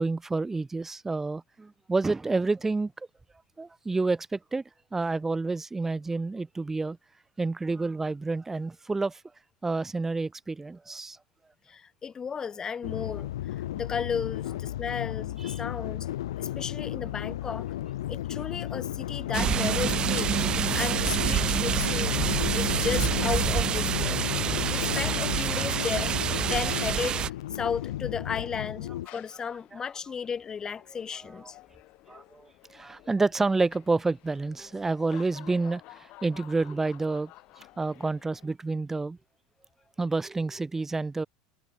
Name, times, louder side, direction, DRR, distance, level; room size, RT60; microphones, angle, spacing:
voice 1, 0.0-2.9 3.6-4.6 4.9-7.0 7.4-9.2 9.6-11.2 15.4-15.6 22.4-22.6 32.1-35.8 36.2-37.3 37.8-39.2 40.0-41.3, right 3 dB, 15° right, 2.1 m, -29 dB
voice 2, 11.7-13.3 13.7-16.1 16.4-17.7 18.1-24.2 24.7-26.2 26.5-27.2 27.5-31.6, left 6 dB, 25° left, 0.8 m, -34 dB
sound 1, 12.8-29.1, left 14 dB, 70° left, 0.3 m, -33 dB
sound 2, 19.3-27.3, right 9 dB, 35° right, 0.8 m, -27 dB
sound 3, 20.3-38.5, left 19 dB, 50° left, 7.5 m, -54 dB
figure-of-eight pair, 80°, 3 cm